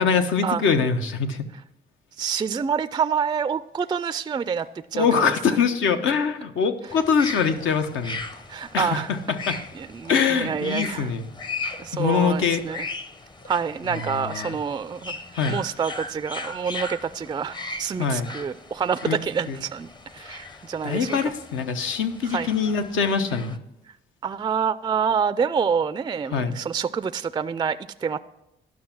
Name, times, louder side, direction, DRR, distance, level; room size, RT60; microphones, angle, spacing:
voice 1, 0.0-1.4 4.9-8.2 8.7-9.6 10.1-11.3 11.9-12.6 13.9-14.5 15.4-15.6 18.0-18.3 19.0-19.2 19.5-19.6 20.8-23.6 26.3-26.6, left 6 dB, 80° left, 7 dB, 1.0 m, -23 dB
voice 2, 2.2-4.7 4.9-5.6 8.5-9.1 9.7-11.1 11.8-12.9 13.5-15.2 15.5-21.3 22.3-22.5 24.2-28.2, right 6 dB, 20° right, 13 dB, 0.3 m, -27 dB
sound 1, 2.9-3.2 3.7-4.1 4.4-4.9 5.3-5.7 6.1-6.4 6.8-6.9 7.2-7.3 7.5-7.9 8.3-8.4 9.0-9.5 10.0-10.4 10.9-11.2 11.7-12.1 12.6-12.9 13.4-13.5 13.8-13.9 14.2-14.7 14.9-15.5, left 1 dB, 50° left, 3.0 m, -50 dB
sound 2, 6.9-23.6, left 3 dB, 20° left, 0.7 m, -38 dB
11.0 x 6.0 x 5.9 m, 0.90 s
cardioid pair, 90°, 20 cm